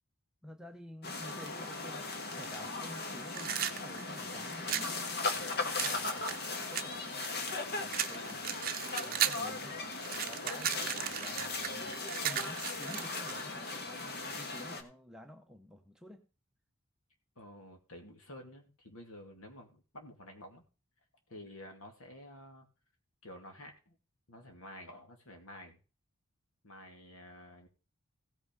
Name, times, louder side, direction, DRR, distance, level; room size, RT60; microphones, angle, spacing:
voice 1, 0.4-7.0 7.8-8.4 8.8-9.8 10.3-12.0 12.2-16.3, equal, 5° right, 4 dB, 0.7 m, -51 dB
sound 1, 1.0-14.8, left 3 dB, 45° left, 1.5 m, -38 dB
sound 2, 3.3-4.9 5.8-7.6 7.9-9.5 9.8-13.4, right 11 dB, 40° right, 0.7 m, -35 dB
voice 2, 8.2-8.8 9.6-9.7 17.4-20.6 21.3-22.7 23.2-24.0 24.3-25.8 26.6-27.7, left 1 dB, 80° left, 4 dB, 2.7 m, -51 dB
15.5 x 5.8 x 5.4 m, 0.34 s
head